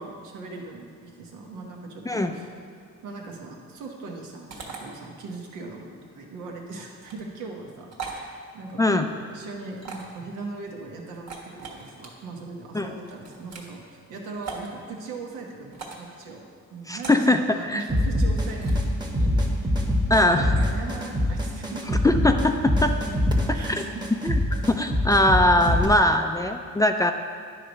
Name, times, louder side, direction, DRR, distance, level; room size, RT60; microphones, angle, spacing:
voice 1, 0.0-2.5 3.0-9.0 9.3-13.8 14.1-16.4 16.7-18.7 19.0-19.8 20.1-22.0 23.5-24.0, right 3 dB, 90° right, 0 dB, 1.1 m, -39 dB
sound 1, 4.5-4.8 7.0-7.2 7.9-8.2 9.8-10.2 11.1-12.1 13.0-13.7 14.4-14.7 15.7-16.1 17.0-17.3 18.2-18.8, right 4 dB, 60° right, 1.4 m, -39 dB
voice 2, 8.8-9.1 12.7-12.9 16.9-17.8 20.1-20.6 22.0-23.0 23.5-23.8 24.2-24.4 24.7-27.1, left 1 dB, 10° left, 6 dB, 0.3 m, -21 dB
sound 2, 17.9-25.9, left 1 dB, 15° right, 1.0 m, -24 dB
9.9 x 3.3 x 5.2 m, 2.2 s
cardioid pair, 90°, 30 cm